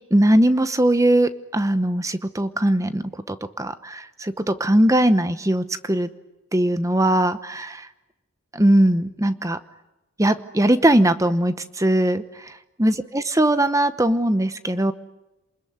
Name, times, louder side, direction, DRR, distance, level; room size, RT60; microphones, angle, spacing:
voice 1, 0.1-6.1 6.5-7.9 8.5-9.6 10.2-14.9, right 1 dB, 15° right, 12 dB, 0.9 m, -20 dB
28.5 x 21.0 x 9.5 m, 1.0 s
head